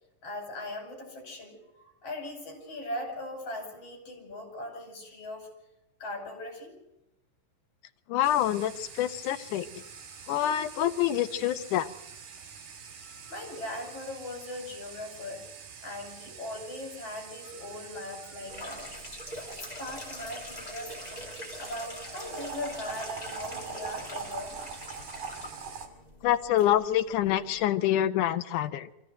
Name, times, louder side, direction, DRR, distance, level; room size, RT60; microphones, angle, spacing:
voice 1, 0.2-5.5 6.0-6.8 9.8-10.2 12.9-15.4 15.8-18.9 19.4-21.2 21.6-24.6, left 1 dB, 40° left, 3 dB, 6.3 m, -40 dB
voice 2, 8.1-9.8 10.3-11.9 26.2-28.9, left 12 dB, 70° left, 10 dB, 2.3 m, -26 dB
sound 1, 8.2-25.9, right 6 dB, 85° right, 4.2 m, -44 dB
sound 2, 18.5-27.7, left 2 dB, 15° left, 2.4 m, -44 dB
23.5 x 15.5 x 7.9 m, 0.89 s
omnidirectional pair, 4.1 m